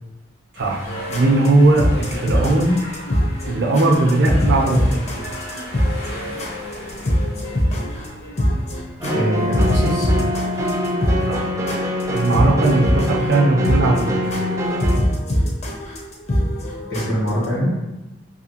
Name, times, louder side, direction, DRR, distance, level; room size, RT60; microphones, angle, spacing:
sound 1, 0.5-9.3, equal, 55° left, 0.8 m, -38 dB
voice 1, 0.6-2.8 3.5-5.1 11.2-11.5 12.1-14.2, right 2 dB, 65° right, 1 dB, 0.5 m, -18 dB
sound 2, 0.9-17.5, equal, 35° left, 0.5 m, -23 dB
voice 2, 9.0-10.3 16.9-17.7, equal, 75° left, -10 dB, 1.4 m, -23 dB
sound 3, 9.0-15.0, equal, 15° right, 0.3 m, -24 dB
2.7 x 2.7 x 2.8 m, 1.0 s
head